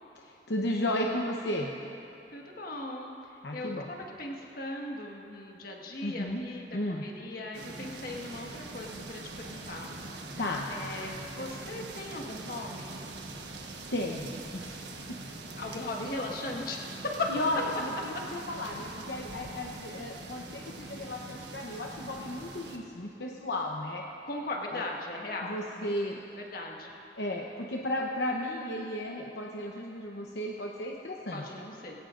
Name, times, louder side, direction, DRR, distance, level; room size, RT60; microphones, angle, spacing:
voice 1, 0.2-1.7 3.4-3.9 6.0-6.4 6.7-7.0 10.4-10.7 13.9-14.9 17.3-24.0 24.7-24.8 25.4-26.2 27.2-31.4, left 1 dB, 75° left, -1 dB, 0.9 m, -34 dB
voice 2, 2.3-3.2 3.5-9.9 10.7-13.0 15.6-16.9 17.2-17.3 20.0-20.1 24.3-25.9 26.5-26.9 31.3-32.0, left 2 dB, 55° left, 0 dB, 1.6 m, -38 dB
sound 1, 7.5-22.8, right 2 dB, 80° right, 1.3 m, -43 dB
20.5 x 17.0 x 2.6 m, 2.8 s
head